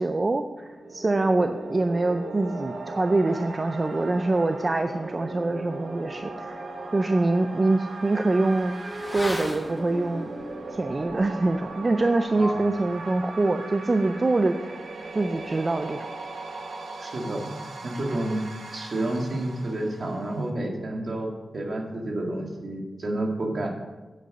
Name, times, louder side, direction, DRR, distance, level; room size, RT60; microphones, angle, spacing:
voice 1, 0.0-6.6 6.9-8.7 9.1-10.3 10.7-14.8 15.1-16.1, right 2 dB, 30° right, 7 dB, 0.5 m, -24 dB
sound 1, 0.6-20.5, right 3 dB, 75° right, 1.2 m, -39 dB
Motorcycle / Accelerating revving vroom, 6.1-6.2 6.6-16.6 16.8-16.9, equal, 10° left, 1.2 m, -42 dB
voice 2, 12.4-12.8 17.0-17.5 17.8-18.4 18.7-23.7, right 1 dB, 55° right, 0 dB, 2.0 m, -30 dB
9.2 x 8.2 x 5.4 m, 1.2 s
wide cardioid pair, 135°, 0 cm